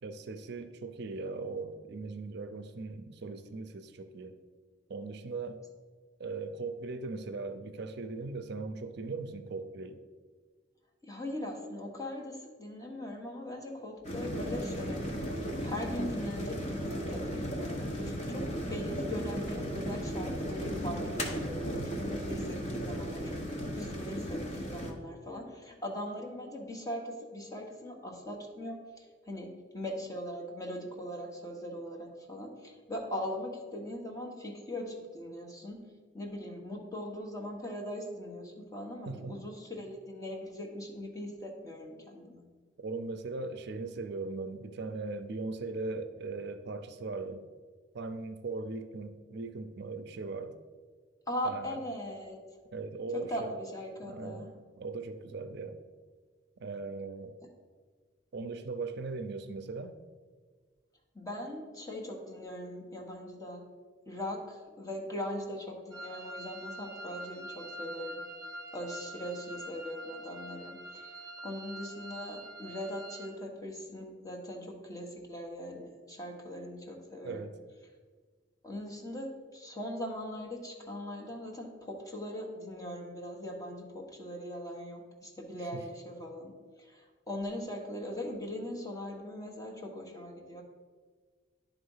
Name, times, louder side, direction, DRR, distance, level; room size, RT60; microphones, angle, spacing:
voice 1, 0.0-4.4 4.9-5.6 6.2-10.0 21.7-22.0 39.1-39.5 42.8-47.5 47.9-50.5 51.4-51.8 52.7-53.5 54.0-54.5 54.8-55.8 56.6-57.4 58.3-59.9 77.2-77.6 85.7-85.8, right 3 dB, 60° right, 9 dB, 0.5 m, -39 dB
voice 2, 11.0-23.4 23.7-35.8 36.1-42.4 51.3-52.4 53.1-54.5 61.1-63.6 64.0-68.2 68.7-71.1 71.4-77.4 78.6-86.5 86.8-90.6, left 1 dB, 20° left, 0 dB, 1.2 m, -40 dB
sound 1, 14.0-24.9, equal, 40° left, 1.1 m, -35 dB
sound 2, 65.9-73.3, right 1 dB, 20° right, 1.1 m, -45 dB
10.5 x 3.6 x 5.5 m, 1.5 s
head